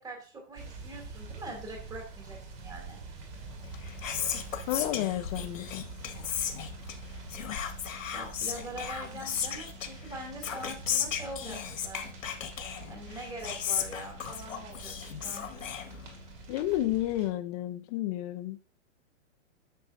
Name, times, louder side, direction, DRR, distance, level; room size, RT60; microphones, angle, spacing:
voice 1, 0.0-3.0 8.1-11.6 11.8-12.1 12.9-14.9 15.2-15.5, right 1 dB, 10° right, 2.6 m, -43 dB
sound 1, 0.6-17.3, right 4 dB, 40° right, 2.4 m, -46 dB
Whispering, 3.6-16.4, left 8 dB, 90° left, 1.7 m, -36 dB
voice 2, 4.7-5.9 16.5-18.6, left 14 dB, 30° left, 0.7 m, -31 dB
12.0 x 6.6 x 2.6 m
hypercardioid pair, 150°, 38 cm